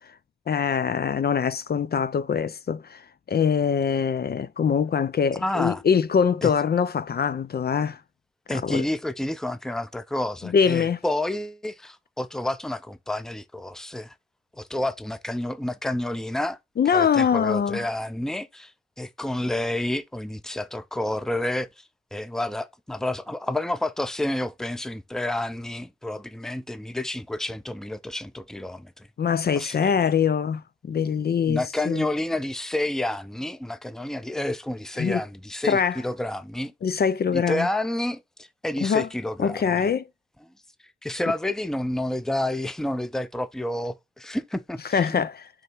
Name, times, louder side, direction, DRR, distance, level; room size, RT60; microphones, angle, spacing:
voice 1, 0.5-8.0 8.5-8.8 10.4-11.0 16.8-17.9 29.2-32.0 35.0-35.2 35.6-36.0 36.8-37.7 38.8-39.1 39.4-40.1 44.8-45.5, left 7 dB, 60° left, 0.4 m, -23 dB
voice 2, 5.4-5.8 6.4-6.5 8.5-14.1 14.5-16.6 16.9-18.7 19.0-21.8 22.1-29.1 29.6-30.1 31.5-36.7 37.3-39.8 41.0-45.3, left 1 dB, 5° left, 0.5 m, -29 dB
6.5 x 3.5 x 4.4 m
wide cardioid pair, 120°, 19 cm